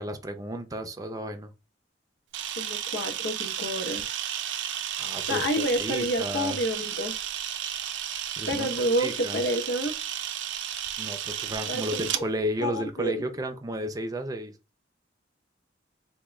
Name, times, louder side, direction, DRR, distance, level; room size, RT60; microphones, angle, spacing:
voice 1, 0.0-1.5 5.0-5.5 5.8-6.6 8.4-8.7 9.0-9.4 11.0-14.5, equal, 20° right, 0.5 m, -33 dB
Camera, 2.3-12.2, right 10 dB, 80° right, 0.4 m, -33 dB
voice 2, 2.6-4.2 5.2-7.1 8.5-9.9 11.7-12.2 12.6-13.2, equal, 85° left, 0.8 m, -29 dB
3.6 x 2.2 x 3.1 m
head